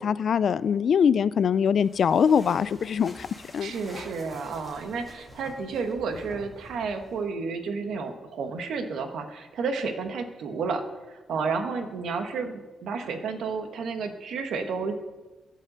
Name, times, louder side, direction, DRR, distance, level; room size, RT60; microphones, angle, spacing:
voice 1, 0.0-3.3 3.5-3.7, left 7 dB, 50° left, 17 dB, 0.3 m, -23 dB
sound 1, 1.8-7.3, left 1 dB, 5° left, 1.8 m, -48 dB
voice 2, 3.6-10.8 11.1-14.9, right 5 dB, 75° right, 7 dB, 1.2 m, -31 dB
12.5 x 5.5 x 7.6 m, 1.2 s
wide cardioid pair, 160°, 0 cm